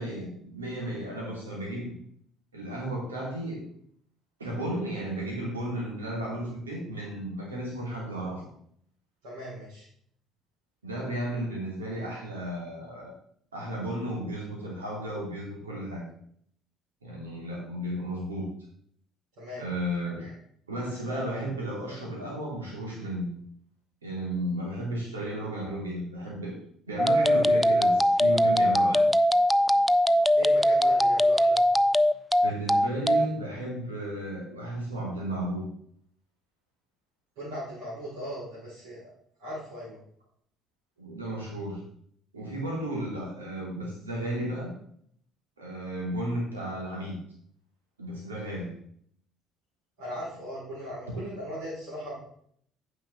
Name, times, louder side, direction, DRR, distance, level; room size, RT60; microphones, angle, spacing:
voice 1, 0.0-2.0 2.5-3.7 4.4-8.4 10.8-13.1 13.5-16.0 17.0-18.5 19.6-20.4 20.7-23.3 24.0-26.6 26.9-29.1 32.4-35.7 41.0-41.8 42.3-44.7 45.6-47.2 48.0-48.8, right 1 dB, 80° right, -3 dB, 2.6 m, -34 dB
voice 2, 9.2-9.8 19.4-19.6 30.3-31.6 37.4-39.1 39.4-40.0 50.0-52.1, equal, 65° right, -11 dB, 4.1 m, -38 dB
sound 1, 27.0-33.3, equal, ahead, 0.3 m, -21 dB
9.2 x 5.8 x 3.9 m, 0.65 s
figure-of-eight pair, 50°, 0 cm